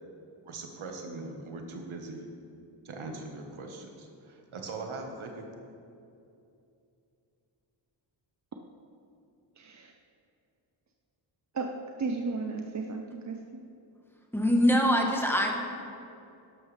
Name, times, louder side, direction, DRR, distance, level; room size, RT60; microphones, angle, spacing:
voice 1, 0.4-2.2 2.8-5.5, right 3 dB, 90° right, 2 dB, 1.4 m, -41 dB
voice 2, 9.6-9.9 11.5-11.7 12.0-13.6, right 4 dB, 35° right, 3 dB, 0.7 m, -34 dB
voice 3, 14.3-15.6, equal, 5° left, 1 dB, 1.3 m, -23 dB
12.5 x 11.5 x 3.3 m, 2.6 s
wide cardioid pair, 105°, 47 cm